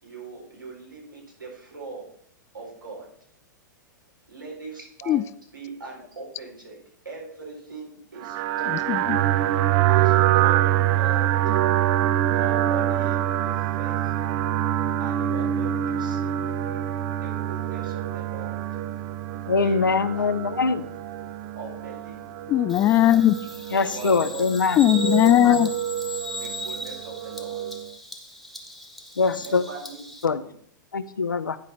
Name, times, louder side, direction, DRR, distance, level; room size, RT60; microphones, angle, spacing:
voice 1, 0.0-2.1 2.5-3.1 4.3-6.8 7.0-8.7 9.0-9.1 9.4-11.4 12.3-14.1 15.0-16.5 17.2-18.6 19.6-20.3 21.5-22.3 23.8-24.5 25.3-25.6 26.3-27.6 29.3-30.5, right 3 dB, 90° right, -3 dB, 4.2 m, -41 dB
sound 1, 8.2-27.9, right 12 dB, 40° right, 0.5 m, -25 dB
voice 2, 8.7-9.2 22.5-23.4 24.8-25.7, left 13 dB, 25° left, 17 dB, 0.3 m, -18 dB
voice 3, 19.5-20.8 23.7-24.9 25.4-25.7 29.2-29.6 30.2-30.4 30.9-31.6, left 4 dB, 90° left, 12 dB, 0.6 m, -23 dB
Bird vocalization bird call bird song, 22.7-30.3, equal, ahead, 1.2 m, -38 dB
10.5 x 4.8 x 5.6 m, 0.65 s
hypercardioid pair, 105°, 10 cm